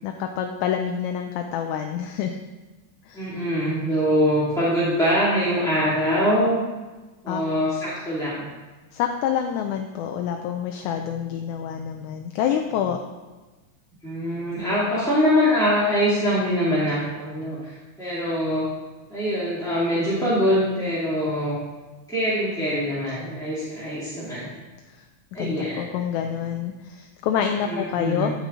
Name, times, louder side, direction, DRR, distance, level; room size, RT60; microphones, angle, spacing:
voice 1, 0.0-2.4 3.1-3.3 7.3-7.4 8.9-13.0 24.9-25.0 25.3-28.3, left 8 dB, 80° left, 4 dB, 1.9 m, -27 dB
voice 2, 3.1-6.6 7.2-8.5 14.0-18.7 19.1-21.6 22.1-24.5 25.3-25.8 27.6-28.3, equal, ahead, -11 dB, 1.5 m, -23 dB
13.0 x 5.3 x 3.8 m, 1.2 s
omnidirectional pair, 3.6 m